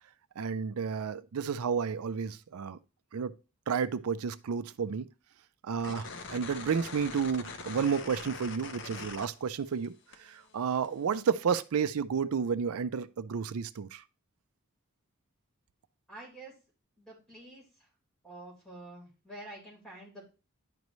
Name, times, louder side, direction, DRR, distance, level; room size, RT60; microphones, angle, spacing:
voice 1, 0.4-2.8 3.1-3.4 3.7-5.1 5.6-14.0, right 6 dB, 85° right, 0.4 m, -31 dB
sound 1, 5.8-9.9 10.1-11.2, left 4 dB, 55° left, 0.7 m, -43 dB
voice 2, 16.1-16.5 17.0-17.9 18.2-20.2, right 1 dB, 5° left, 4.3 m, -48 dB
10.5 x 5.3 x 3.1 m
head